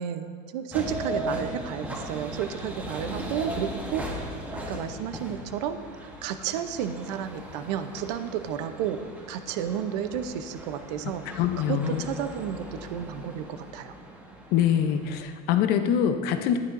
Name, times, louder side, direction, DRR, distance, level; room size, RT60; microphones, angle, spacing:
voice 1, 0.0-4.1 4.7-5.8 6.2-9.0 9.3-11.2 11.7-13.9, right 9 dB, 80° right, 9 dB, 0.8 m, -32 dB
sound 1, 0.7-15.2, right 1 dB, 10° right, 1.2 m, -38 dB
voice 2, 11.4-12.1 14.5-16.6, left 9 dB, 50° left, 8 dB, 0.7 m, -24 dB
12.5 x 10.5 x 2.6 m, 2.2 s
cardioid pair, 155°, 21 cm